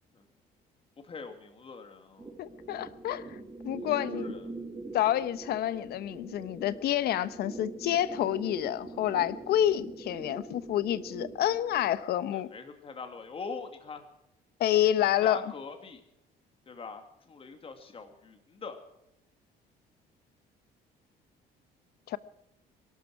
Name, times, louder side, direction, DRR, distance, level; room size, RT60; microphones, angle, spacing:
voice 1, 1.0-2.3 3.8-4.5 12.3-14.0 15.0-16.0 16.7-18.8, left 4 dB, 35° left, 6 dB, 2.2 m, -43 dB
sound 1, 2.2-12.1, right 2 dB, 20° right, 2.5 m, -43 dB
voice 2, 2.4-3.4 3.6-4.4 4.9-12.5 14.6-15.5 22.1-22.2, left 12 dB, 70° left, 15 dB, 1.0 m, -28 dB
23.5 x 12.5 x 4.7 m, 0.83 s
cardioid pair, 110°, 17 cm